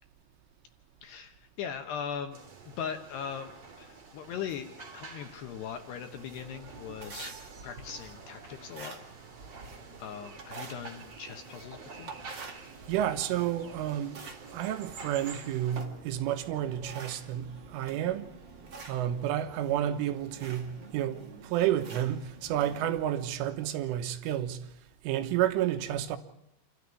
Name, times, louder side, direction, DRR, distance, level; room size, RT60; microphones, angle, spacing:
voice 1, 1.0-2.4 2.7-3.5 3.8-7.3 7.6-9.0 10.0-12.1, left 7 dB, 70° left, 2.8 m, -39 dB
sound 1, 2.3-15.9, right 4 dB, 40° right, 3.5 m, -49 dB
sound 2, 6.2-23.3, right 4 dB, 60° right, 1.2 m, -48 dB
voice 2, 12.5-14.2 14.5-18.3 18.9-24.7 25.0-26.2, right 11 dB, 75° right, 3.5 m, -31 dB
28.0 x 13.5 x 9.7 m
omnidirectional pair, 5.9 m